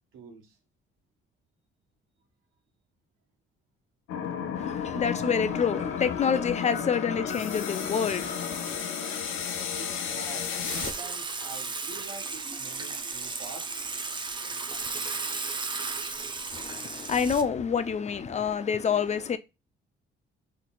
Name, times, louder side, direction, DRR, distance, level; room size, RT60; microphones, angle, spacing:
voice 1, 0.1-0.6 9.7-13.7, right 3 dB, 85° right, 1.2 m, -45 dB
sound 1, 4.1-10.9, left 7 dB, 90° left, 0.8 m, -32 dB
voice 2, 4.5-8.8 16.5-19.4, left 6 dB, 35° left, 0.4 m, -28 dB
Water / Water tap faucet / Sink (filling or washing), 10.6-17.4, right 4 dB, 25° right, 0.5 m, -34 dB
3.9 x 3.2 x 2.2 m
cardioid pair, 90°, 20 cm